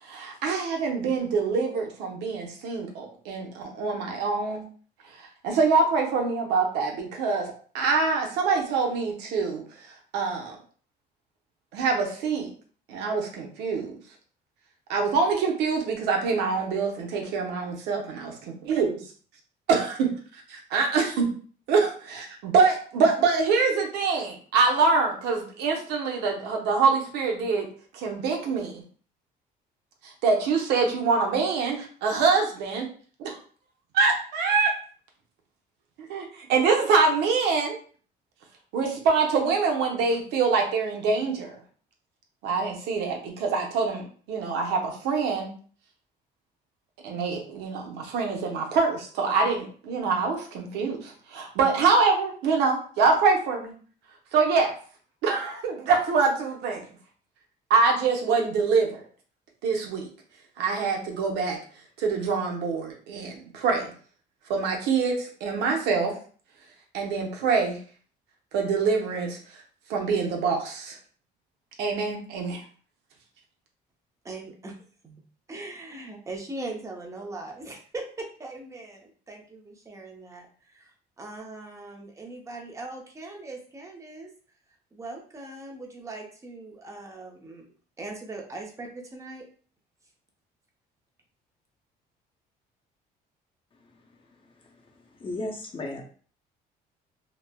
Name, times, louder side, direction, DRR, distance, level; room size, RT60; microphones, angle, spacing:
voice 1, 0.0-4.6 5.1-10.6 11.7-12.5 12.9-13.9 14.9-19.0 19.7-20.1 20.7-21.3 21.7-27.7 27.9-28.8 30.0-32.9 33.2-33.4 33.9-34.7 36.1-37.8 38.7-41.6 42.4-45.5 47.0-53.7 54.3-54.7 55.2-56.8 57.7-59.0 59.6-60.1 60.6-61.6 62.0-63.9 64.5-66.1 66.9-67.8 68.5-69.4 69.9-71.0 71.8-72.6, right 4 dB, 90° right, 1 dB, 0.7 m, -25 dB
voice 2, 74.2-74.7 75.0-75.2 75.5-80.9 81.2-84.3 84.9-87.7 88.0-89.5, right 2 dB, 20° right, 1 dB, 0.6 m, -40 dB
voice 3, 95.2-96.0, left 2 dB, 30° left, 0 dB, 0.6 m, -33 dB
3.1 x 2.1 x 2.2 m, 0.44 s
cardioid pair, 110°, 17 cm